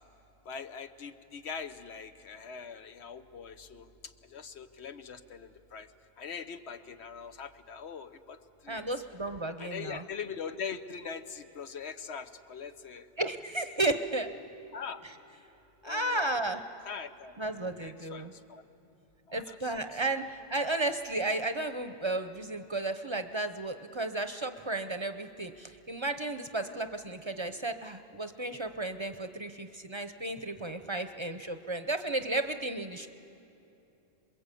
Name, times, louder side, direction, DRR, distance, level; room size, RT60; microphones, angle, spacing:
voice 1, 0.5-3.9 4.3-5.9 6.2-8.4 8.6-8.8 9.6-13.1 14.7-15.0 15.8-16.3 16.8-17.3 17.8-18.6 19.3-20.0, left 6 dB, 90° left, 10 dB, 1.2 m, -42 dB
voice 2, 8.7-10.0 13.2-14.3 15.8-16.6 17.4-18.3 19.3-33.1, right 2 dB, 30° right, 9 dB, 0.7 m, -33 dB
28.0 x 21.5 x 8.4 m, 2.8 s
omnidirectional pair, 1.1 m